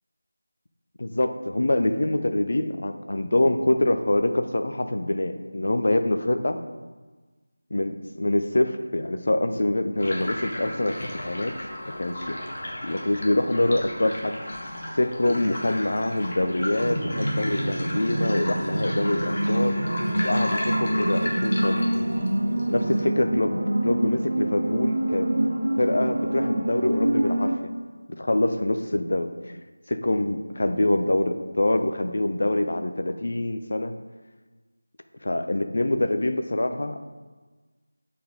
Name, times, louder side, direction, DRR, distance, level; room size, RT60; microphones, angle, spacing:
voice 1, 1.0-6.6 7.7-11.5 12.0-12.4 12.8-14.3 15.0-19.8 20.2-21.9 22.7-25.3 25.8-27.5 28.1-29.6 29.9-33.9 35.2-37.0, left 1 dB, 50° left, 8 dB, 0.5 m, -25 dB
sound 1, 10.0-23.0, left 1 dB, 35° left, 1.0 m, -34 dB
sound 2, 16.8-27.6, right 1 dB, 55° right, 0.7 m, -26 dB
7.7 x 4.1 x 3.7 m, 1.3 s
figure-of-eight pair, 165°, 0 cm